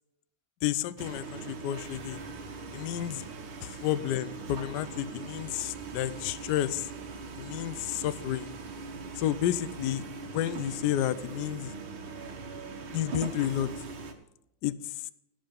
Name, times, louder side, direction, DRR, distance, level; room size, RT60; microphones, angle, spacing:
voice 1, 0.6-2.2 2.7-3.2 3.6-6.9 7.4-8.5 9.2-10.0 10.3-11.7 12.9-13.7 14.6-15.1, left 12 dB, 70° left, 15 dB, 1.0 m, -31 dB
sound 1, 1.0-14.1, right 4 dB, 80° right, 2.2 m, -41 dB
17.5 x 5.8 x 5.1 m, 0.84 s
omnidirectional pair, 2.2 m